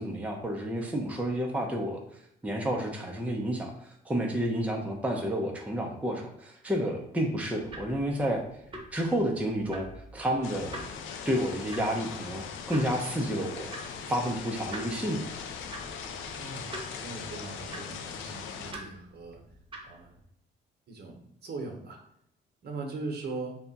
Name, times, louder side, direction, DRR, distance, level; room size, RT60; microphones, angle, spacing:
voice 1, 0.0-2.0 2.4-8.4 8.9-10.8 11.2-13.7 14.1-15.3, equal, 5° right, 1 dB, 0.6 m, -30 dB
sound 1, 7.6-20.2, right 1 dB, 25° right, 0.9 m, -47 dB
sound 2, 10.4-18.7, left 6 dB, 80° left, 0.5 m, -40 dB
voice 2, 16.3-19.4 19.8-20.2 20.9-22.0 22.6-23.6, right 3 dB, 55° right, 2 dB, 0.9 m, -40 dB
3.4 x 2.3 x 4.0 m, 0.76 s
cardioid pair, 90°, 20 cm